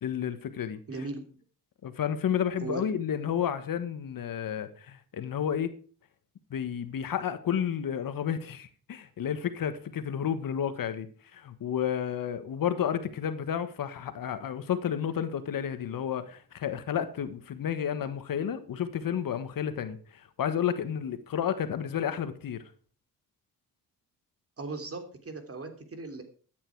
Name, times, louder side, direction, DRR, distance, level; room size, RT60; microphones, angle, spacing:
voice 1, 0.0-0.8 1.8-5.7 6.5-22.7, left 9 dB, 65° left, 1.4 m, -31 dB
voice 2, 0.9-1.4 2.6-2.8 24.6-26.2, right 3 dB, 40° right, 3.2 m, -38 dB
13.5 x 9.4 x 4.7 m
cardioid pair, 70°, 36 cm